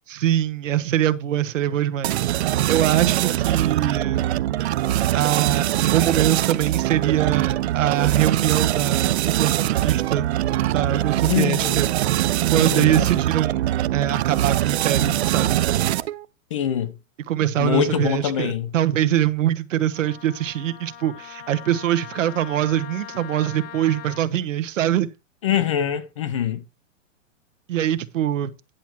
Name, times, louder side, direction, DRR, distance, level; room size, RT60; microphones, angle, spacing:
voice 1, 0.1-4.3 5.1-10.3 10.7-11.9 12.5-15.6 17.3-25.1 27.7-28.5, right 11 dB, 75° right, 1.1 m, -23 dB
sound 1, 2.0-16.2, right 13 dB, 55° right, 0.5 m, -22 dB
voice 2, 11.3-11.8 12.5-13.1 16.5-16.9 17.6-18.7 25.4-26.6, left 9 dB, 25° left, 0.4 m, -24 dB
Wind instrument woodwind instrument, 19.9-24.2, left 11 dB, 50° left, 1.0 m, -40 dB
10.5 x 5.9 x 4.5 m
supercardioid pair, 170°, 39 cm